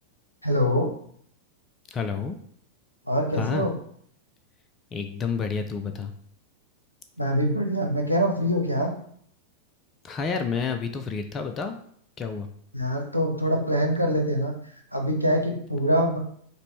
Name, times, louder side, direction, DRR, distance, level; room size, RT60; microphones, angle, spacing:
voice 1, 0.4-0.9 3.1-3.8 7.2-8.9 12.7-14.5 14.9-16.2, equal, 85° left, 3 dB, 0.6 m, -24 dB
voice 2, 1.9-2.4 3.4-3.7 4.9-6.1 10.0-11.8 12.2-12.5, left 5 dB, 25° left, 7 dB, 0.4 m, -29 dB
4.9 x 2.1 x 3.2 m, 0.63 s
figure-of-eight pair, 90°, 0 cm